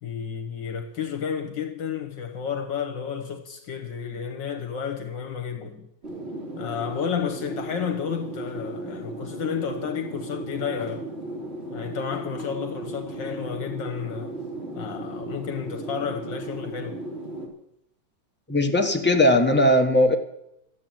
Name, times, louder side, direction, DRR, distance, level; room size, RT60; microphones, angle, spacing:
voice 1, 0.0-5.9 6.6-11.1 11.7-14.4 14.7-17.0, left 7 dB, 65° left, 1.7 m, -31 dB
sound 1, 6.0-17.5, right 2 dB, 30° right, 3.4 m, -36 dB
voice 2, 18.5-20.1, left 1 dB, 5° left, 1.1 m, -19 dB
13.5 x 8.8 x 9.1 m
omnidirectional pair, 2.2 m